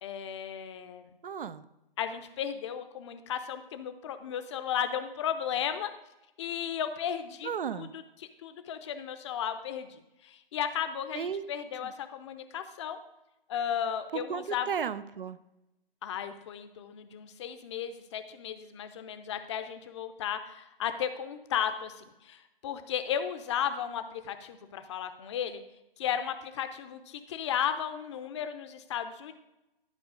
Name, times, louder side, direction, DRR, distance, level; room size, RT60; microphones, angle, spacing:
voice 1, 0.0-1.1 2.0-5.9 6.4-7.9 8.4-13.0 13.5-14.7 16.0-25.6 26.0-29.3, left 9 dB, 30° left, 9 dB, 0.7 m, -34 dB
voice 2, 1.2-1.7 7.4-7.9 11.1-11.4 11.8-11.9 14.1-15.4, right 7 dB, 65° right, 15 dB, 0.6 m, -34 dB
11.5 x 5.2 x 5.1 m, 0.93 s
figure-of-eight pair, 135°, 29 cm